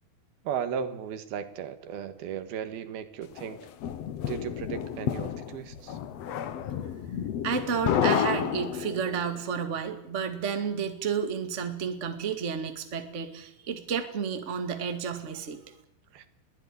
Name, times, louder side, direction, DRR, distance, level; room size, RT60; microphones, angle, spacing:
voice 1, 0.5-3.6 4.3-6.0 16.1-16.3, right 8 dB, 85° right, 10 dB, 3.4 m, -35 dB
sound 1, 3.4-9.2, left 9 dB, 60° left, 1.8 m, -30 dB
voice 2, 7.4-15.6, right 6 dB, 25° right, 7 dB, 1.7 m, -31 dB
22.0 x 16.0 x 9.9 m, 0.75 s
omnidirectional pair, 4.3 m